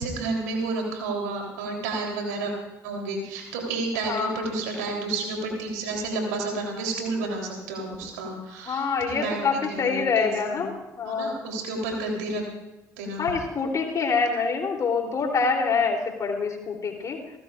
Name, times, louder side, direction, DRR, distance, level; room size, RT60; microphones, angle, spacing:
voice 1, 0.0-2.5 2.8-10.7 11.0-12.5 13.0-13.2, right 3 dB, 70° right, 1 dB, 3.6 m, -31 dB
voice 2, 8.7-11.4 13.2-17.2, left 5 dB, 35° left, 2 dB, 3.4 m, -26 dB
29.0 x 14.0 x 2.5 m, 1.1 s
figure-of-eight pair, 50°, 9 cm